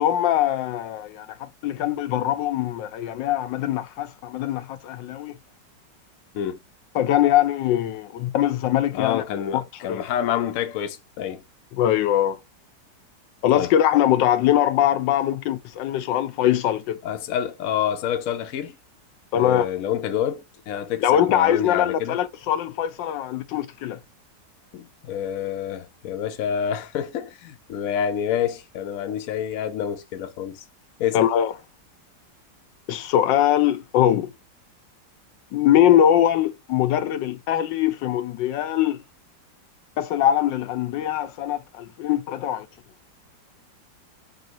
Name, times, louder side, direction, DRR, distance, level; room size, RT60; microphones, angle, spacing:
voice 1, 0.0-5.3 6.9-9.2 9.5-9.6 9.9-10.0 11.8-12.4 13.4-17.0 19.3-19.7 21.0-24.0 31.1-31.5 32.9-34.3 35.5-39.0 40.0-42.7, left 11 dB, 85° left, 1.3 m, -22 dB
voice 2, 8.9-11.4 13.6-13.7 17.0-18.7 19.3-22.2 24.7-30.6 31.0-31.3, left 9 dB, 65° left, 0.9 m, -28 dB
3.8 x 3.7 x 2.7 m
omnidirectional pair, 1.9 m